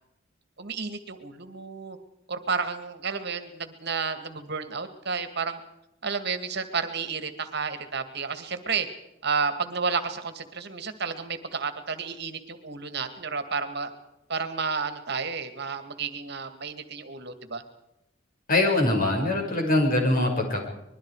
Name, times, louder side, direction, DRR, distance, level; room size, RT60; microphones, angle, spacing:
voice 1, 0.6-2.0 2.3-5.6 6.0-8.9 9.2-13.9 14.3-17.6, right 5 dB, 60° right, 9 dB, 2.2 m, -31 dB
voice 2, 18.5-20.6, left 2 dB, 45° left, 2 dB, 6.0 m, -23 dB
25.5 x 21.5 x 4.9 m, 0.84 s
head